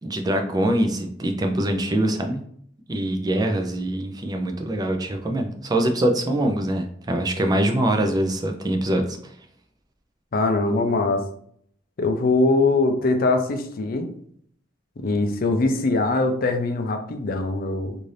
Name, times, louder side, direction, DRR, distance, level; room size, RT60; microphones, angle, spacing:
voice 1, 0.0-2.4 2.9-9.2, right 1 dB, 20° right, 4 dB, 0.4 m, -23 dB
voice 2, 10.3-11.3 12.0-14.1 15.0-18.0, left 3 dB, 50° left, 6 dB, 0.4 m, -22 dB
2.6 x 2.5 x 3.2 m, 0.64 s
head